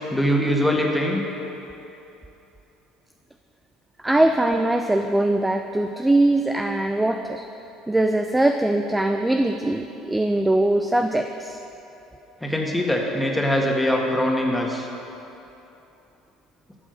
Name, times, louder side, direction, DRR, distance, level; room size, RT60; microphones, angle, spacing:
voice 1, 0.1-1.2 12.4-14.9, equal, 5° left, 0 dB, 1.7 m, -22 dB
voice 2, 4.0-7.4 7.9-11.6, right 1 dB, 10° right, 6 dB, 0.5 m, -21 dB
12.5 x 6.2 x 6.6 m, 3.0 s
supercardioid pair, 90°, 0 cm